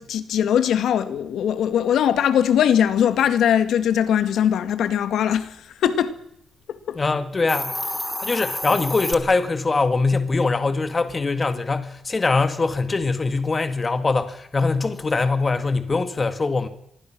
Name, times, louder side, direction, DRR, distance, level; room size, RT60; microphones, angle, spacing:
voice 1, 0.0-6.2 6.7-7.0, left 9 dB, 80° left, 2.1 m, -21 dB
voice 2, 6.9-7.8 8.2-16.7, left 3 dB, 25° left, 2.1 m, -22 dB
Hiss, 7.3-9.1, left 1 dB, 10° left, 1.6 m, -29 dB
26.5 x 22.0 x 6.2 m
cardioid pair, 150°, 0 cm